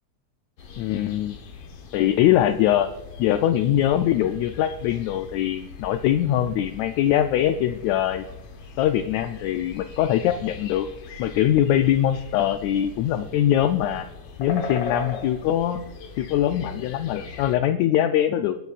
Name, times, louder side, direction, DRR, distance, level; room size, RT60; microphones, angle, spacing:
sound 1, 0.6-17.6, left 5 dB, 60° left, 2.1 m, -40 dB
voice 1, 0.8-1.4 1.9-2.9 3.2-8.3 8.8-10.9 11.2-14.1 14.4-15.8 16.2-18.6, left 11 dB, 80° left, 8 dB, 1.8 m, -22 dB
26.5 x 10.5 x 2.4 m, 0.99 s
omnidirectional pair, 3.4 m